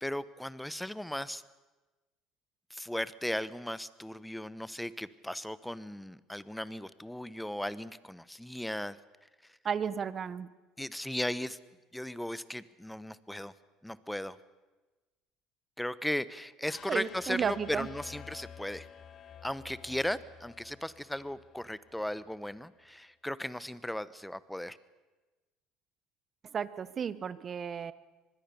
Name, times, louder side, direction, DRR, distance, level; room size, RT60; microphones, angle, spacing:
voice 1, 0.0-1.4 2.7-9.0 10.8-11.6 11.9-13.5 13.8-14.4 15.8-18.9 19.4-24.8, left 1 dB, 5° left, 17 dB, 1.0 m, -36 dB
voice 2, 9.6-10.5 16.9-17.9 26.5-27.9, right 7 dB, 40° right, 16 dB, 1.2 m, -33 dB
sound 1, 16.6-22.7, left 8 dB, 45° left, 1.0 m, -51 dB
25.0 x 20.5 x 7.0 m, 1.2 s
supercardioid pair, 85°, 0 cm